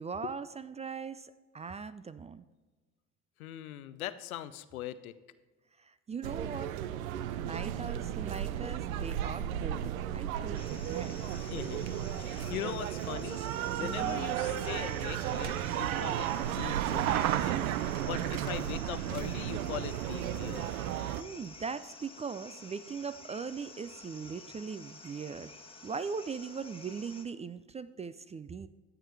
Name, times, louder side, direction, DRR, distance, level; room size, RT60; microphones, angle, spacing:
voice 1, 0.0-2.4 5.8-6.8 7.3-11.2 13.8-14.2 20.9-25.5 25.8-28.7, right 5 dB, 15° right, 14 dB, 0.3 m, -40 dB
voice 2, 3.4-5.1 11.4-13.4 13.8-20.7, left 12 dB, 80° left, 15 dB, 0.6 m, -41 dB
sound 1, 6.2-21.2, right 11 dB, 80° right, 0.6 m, -34 dB
sound 2, 10.5-27.3, left 3 dB, 15° left, 1.4 m, -51 dB
14.0 x 8.9 x 3.3 m, 1.3 s
hypercardioid pair, 55°, 42 cm